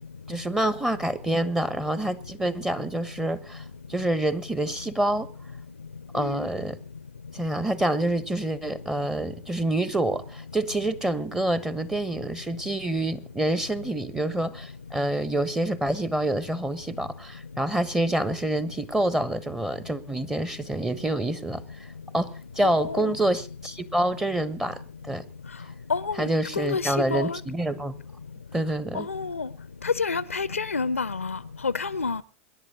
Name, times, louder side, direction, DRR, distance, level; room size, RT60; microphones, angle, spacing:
voice 1, 0.3-5.3 6.1-6.8 7.3-21.9 22.1-25.2 26.2-27.9 28.5-29.1, right 1 dB, 5° right, 1.2 m, -27 dB
voice 2, 6.2-6.5 22.6-23.1 25.9-26.3 26.6-27.4 28.9-29.5 29.8-32.2, left 4 dB, 80° left, 0.7 m, -29 dB
25.5 x 11.0 x 3.8 m
figure-of-eight pair, 90°, 7 cm